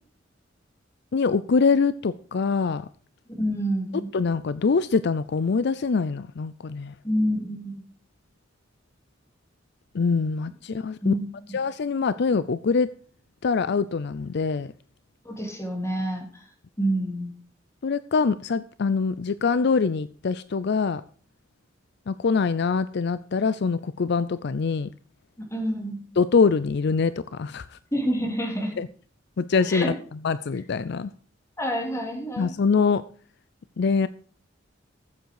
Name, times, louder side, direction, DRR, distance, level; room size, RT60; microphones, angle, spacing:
voice 1, 1.1-2.9 4.1-6.9 9.9-11.1 11.5-13.0 13.4-14.7 17.8-21.0 22.1-24.9 26.2-27.8 28.8-28.9 29.4-29.9 30.2-31.1 32.4-33.0 33.8-34.1, left 5 dB, 60° left, 16 dB, 0.5 m, -24 dB
voice 2, 3.3-4.1 7.0-7.8 11.0-11.3 15.2-16.4 16.8-17.3 25.4-26.0 27.9-28.7 29.7-29.9 31.6-32.5, equal, 15° left, 2 dB, 3.2 m, -27 dB
14.0 x 7.9 x 4.7 m, 0.44 s
head